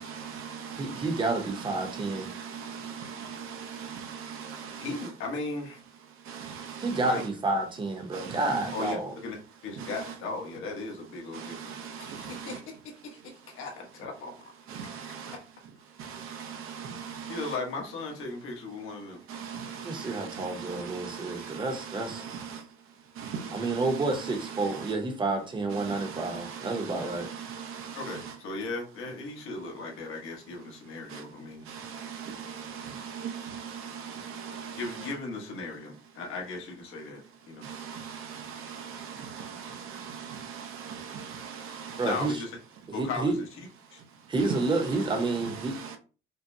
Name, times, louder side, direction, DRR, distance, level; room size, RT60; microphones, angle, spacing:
voice 1, 0.0-5.1 6.2-7.2 8.1-8.9 9.8-10.1 11.3-12.6 14.7-15.4 16.0-17.5 19.3-22.7 23.1-24.9 25.7-28.4 31.1-31.2 31.6-35.1 37.6-38.0 39.1-42.3 44.4-46.0, right 7 dB, 85° right, 0.7 m, -40 dB
voice 2, 0.8-2.3 6.8-9.1 19.8-22.2 23.5-27.3 42.0-42.4 42.9-43.4 44.3-46.0, right 2 dB, 20° right, 0.7 m, -30 dB
voice 3, 4.8-5.8 6.9-7.2 8.7-9.4 9.6-14.5 14.8-14.9 17.3-19.2 27.9-31.7 34.8-37.2 37.5-37.7 42.0-42.5 42.9-43.5 43.9-44.0, left 3 dB, 75° left, 1.2 m, -37 dB
5.2 x 2.1 x 2.6 m
cardioid pair, 165°, 21 cm